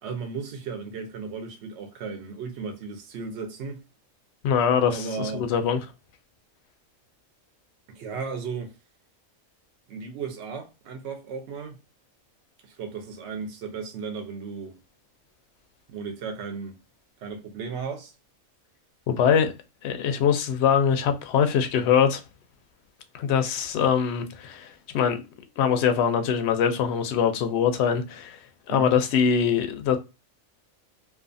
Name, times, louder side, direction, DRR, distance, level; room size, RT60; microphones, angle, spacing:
voice 1, 0.0-3.8 4.8-5.4 7.9-8.7 9.9-11.8 12.6-14.8 15.9-16.8 17.2-18.1 28.7-28.9, right 5 dB, 65° right, 0.9 m, -35 dB
voice 2, 4.4-5.8 19.1-19.5 19.8-22.2 23.1-25.2 25.6-28.4 28.7-30.0, left 7 dB, 65° left, 0.7 m, -23 dB
2.4 x 2.4 x 2.5 m
omnidirectional pair, 1.4 m